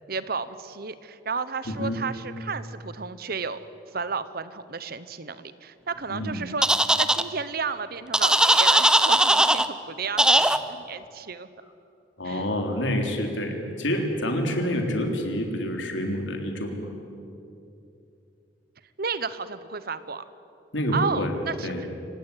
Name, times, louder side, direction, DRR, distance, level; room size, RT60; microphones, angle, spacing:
voice 1, 0.1-3.6 3.9-6.7 7.0-11.5 12.2-12.5 19.0-20.2 20.9-21.9, right 5 dB, 55° right, 14 dB, 1.0 m, -32 dB
voice 2, 1.6-2.0 6.1-6.4 12.2-16.9 20.7-21.3 21.6-21.8, equal, 80° left, 4 dB, 3.6 m, -27 dB
sound 1, 6.6-7.2 8.1-9.7 10.2-10.6, right 1 dB, 5° right, 0.7 m, -19 dB
27.0 x 16.5 x 9.9 m, 2.7 s
head